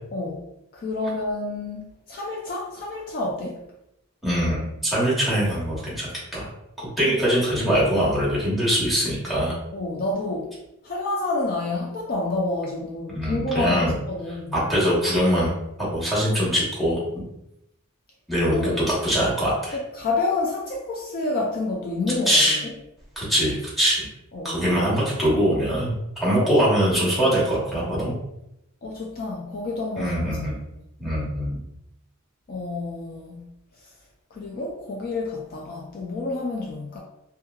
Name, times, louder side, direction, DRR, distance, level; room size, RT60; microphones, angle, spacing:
voice 1, 0.1-0.4 0.7-3.6 7.1-7.2 9.7-10.5 10.8-14.5 18.5-18.8 19.7-22.7 24.3-24.6 26.4-26.5 28.8-30.1 32.5-33.5 34.3-37.0, left 2 dB, 45° left, -2 dB, 0.4 m, -29 dB
voice 2, 4.2-6.5 6.8-9.6 13.1-13.9 14.5-15.5 15.8-17.2 18.3-19.8 22.3-22.6 23.2-24.1 24.4-28.1 30.0-30.5 31.0-31.6, equal, ahead, -7 dB, 1.0 m, -22 dB
3.0 x 2.2 x 2.3 m, 0.86 s
head